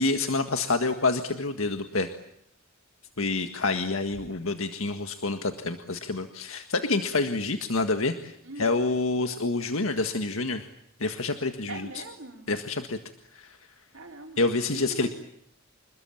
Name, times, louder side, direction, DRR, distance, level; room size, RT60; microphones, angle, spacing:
voice 1, 0.0-2.1 3.2-8.3 8.6-10.7 11.0-11.9 12.5-13.0 13.3-13.6 14.4-15.1, left 3 dB, 80° left, 7 dB, 1.8 m, -27 dB
voice 2, 11.7-12.5 13.9-15.1, right 2 dB, 70° right, 2 dB, 4.5 m, -41 dB
27.5 x 21.5 x 8.8 m, 0.72 s
head